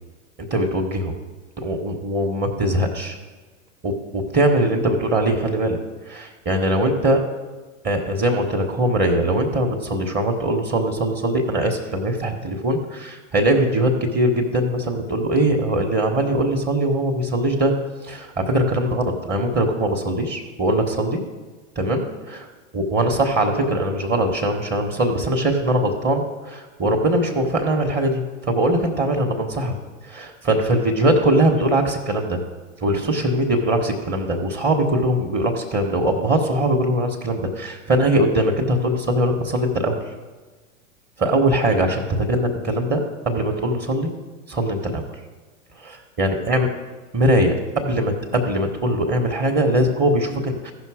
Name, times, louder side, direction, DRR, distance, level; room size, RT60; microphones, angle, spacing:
voice 1, 0.5-1.1 1.6-3.2 3.8-5.8 6.1-7.2 7.8-17.7 18.0-21.2 21.8-22.5 22.7-29.7 30.0-32.4 32.8-40.0 41.2-44.1 44.5-45.0 45.8-46.7 47.1-50.7, right 1 dB, 25° right, 3 dB, 1.2 m, -21 dB
15.0 x 5.6 x 4.9 m, 1.3 s
hypercardioid pair, 110°, 41 cm